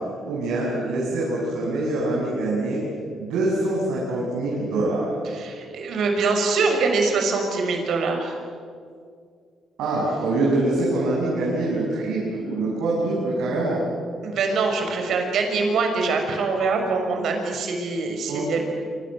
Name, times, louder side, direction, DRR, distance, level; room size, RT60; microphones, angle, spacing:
voice 1, 0.2-2.8 3.2-5.1 9.8-13.8 18.3-18.6, right 2 dB, 90° right, -5 dB, 7.7 m, -24 dB
voice 2, 5.2-8.3 14.2-18.6, right 4 dB, 70° right, 3 dB, 6.3 m, -24 dB
27.5 x 26.5 x 7.9 m, 2.2 s
cardioid pair, 90°, 0 cm